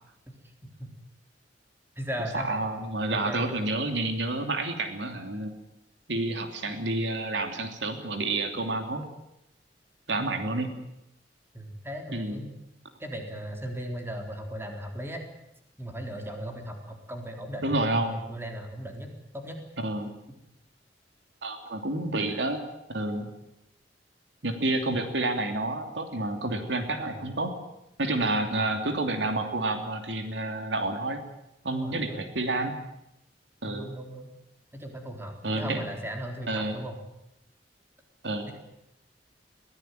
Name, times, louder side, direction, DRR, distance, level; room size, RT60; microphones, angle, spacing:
voice 1, 0.6-0.9 2.0-3.5 11.5-12.5 13.0-15.2 15.8-19.1 19.3-19.6 27.0-27.2 28.4-28.6 31.7-32.3 33.6-34.3 34.7-37.0, equal, 15° right, 3 dB, 3.7 m, -37 dB
voice 2, 2.3-5.5 6.1-9.0 10.1-10.7 12.1-12.4 17.6-18.1 19.8-20.1 21.4-22.6 22.9-23.3 24.4-27.5 28.0-31.2 31.6-32.7 33.6-33.9 35.4-35.8 36.5-36.8 38.2-38.5, right 2 dB, 85° right, 6 dB, 3.0 m, -29 dB
23.0 x 17.0 x 9.3 m, 0.87 s
head